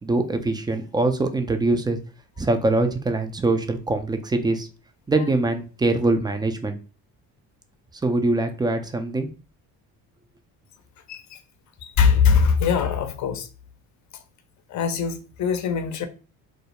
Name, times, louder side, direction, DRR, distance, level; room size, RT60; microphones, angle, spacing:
voice 1, 0.0-2.0 2.4-4.7 5.1-6.8 8.0-9.3, right 2 dB, 10° right, 0.3 m, -23 dB
voice 2, 11.8-13.5 14.7-16.1, left 6 dB, 45° left, 0.6 m, -21 dB
2.3 x 2.0 x 2.8 m
supercardioid pair, 70°, 42 cm